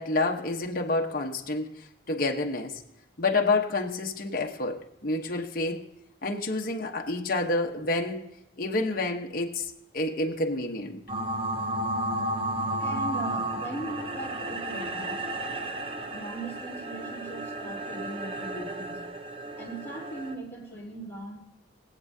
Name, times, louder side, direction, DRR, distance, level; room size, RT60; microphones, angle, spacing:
voice 1, 0.0-1.7 2.1-2.8 3.2-5.8 6.2-8.2 8.6-9.7 9.9-11.0, left 2 dB, 50° left, 1 dB, 1.1 m, -28 dB
sound 1, 11.1-20.3, right 1 dB, 30° right, 0.7 m, -33 dB
voice 2, 12.8-15.2 16.1-19.0 19.6-21.4, right 2 dB, 10° left, -6 dB, 3.5 m, -39 dB
23.5 x 8.3 x 2.8 m, 0.85 s
head